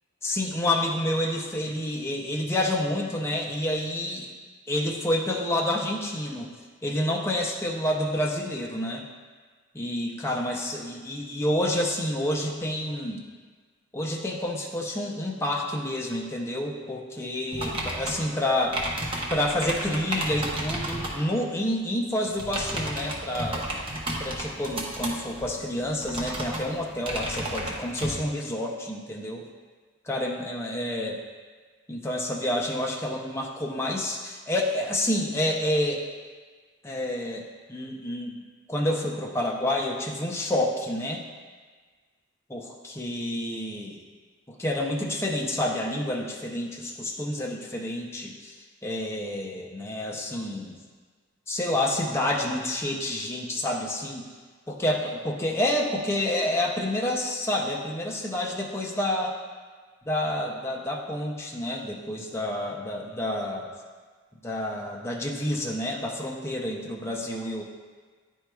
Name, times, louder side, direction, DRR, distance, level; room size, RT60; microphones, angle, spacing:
voice 1, 0.2-4.3 4.7-6.5 6.8-9.0 9.7-13.2 13.9-18.8 19.3-23.7 24.2-29.4 30.1-31.2 31.9-36.0 36.8-38.4 38.7-41.2 42.5-44.0 44.5-50.8 51.5-54.3 54.7-59.4 60.1-63.7 64.4-67.6, left 1 dB, 15° left, -1 dB, 0.5 m, -29 dB
sound 1, 17.5-21.2 22.3-28.1, right 1 dB, 25° right, 0.8 m, -33 dB
10.5 x 4.5 x 2.3 m, 1.5 s
head